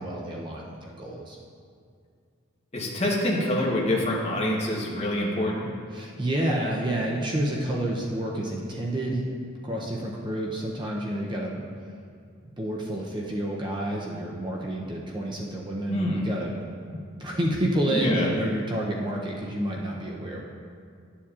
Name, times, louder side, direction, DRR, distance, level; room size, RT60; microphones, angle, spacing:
voice 1, 0.0-1.4 5.9-9.2 9.6-11.6 12.6-16.5 16.8-20.4, right 1 dB, 20° right, -2 dB, 0.5 m, -29 dB
voice 2, 2.7-5.7 15.9-16.2 17.9-18.3, left 1 dB, 30° left, -4 dB, 1.0 m, -26 dB
11.0 x 7.1 x 2.4 m, 2.2 s
head